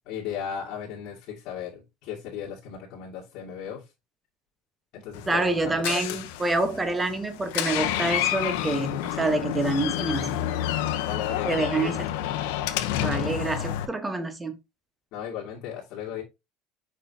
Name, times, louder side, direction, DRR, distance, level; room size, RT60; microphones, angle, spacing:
voice 1, 0.1-3.8 4.9-6.2 11.1-11.9 15.1-16.2, left 8 dB, 60° left, 2.1 m, -36 dB
Door, 5.1-13.8, left 12 dB, 85° left, 0.9 m, -29 dB
voice 2, 5.3-10.4 11.5-12.0 13.0-14.5, right 2 dB, 15° right, 1.1 m, -27 dB
6.5 x 5.4 x 2.8 m
cardioid pair, 140°, 0 cm